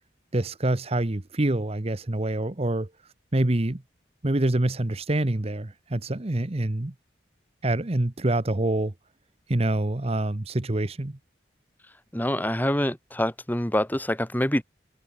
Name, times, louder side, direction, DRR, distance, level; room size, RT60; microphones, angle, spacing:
voice 1, 0.3-2.9 3.3-3.8 4.2-6.9 7.6-8.9 9.5-11.2, right 1 dB, 30° right, 1.0 m, -26 dB
voice 2, 12.1-14.6, left 1 dB, 10° left, 1.8 m, -25 dB
head